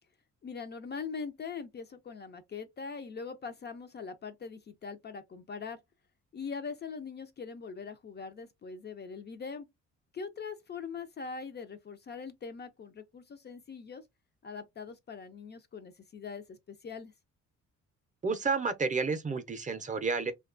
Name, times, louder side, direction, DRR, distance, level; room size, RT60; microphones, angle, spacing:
voice 1, 0.4-5.8 6.3-9.7 10.1-14.0 14.4-17.1, left 5 dB, 35° left, 0.4 m, -42 dB
voice 2, 18.2-20.3, right 4 dB, 25° right, 0.6 m, -30 dB
2.7 x 2.2 x 2.4 m
cardioid pair, 90°, 30 cm